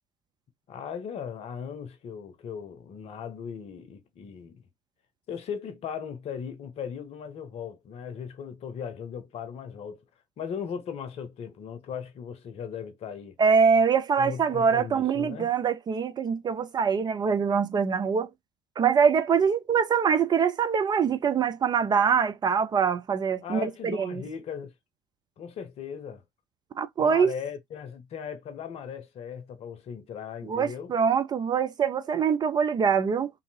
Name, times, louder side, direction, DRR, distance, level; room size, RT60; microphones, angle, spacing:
voice 1, 0.7-4.6 5.3-10.0 10.4-13.3 14.2-15.5 23.4-24.7 25.4-26.2 27.0-30.9, left 7 dB, 45° left, 0.7 m, -38 dB
voice 2, 13.4-18.3 18.8-24.2 26.8-27.3 30.4-33.3, right 6 dB, 30° right, 0.4 m, -24 dB
2.6 x 2.6 x 2.7 m
figure-of-eight pair, 60°, 14 cm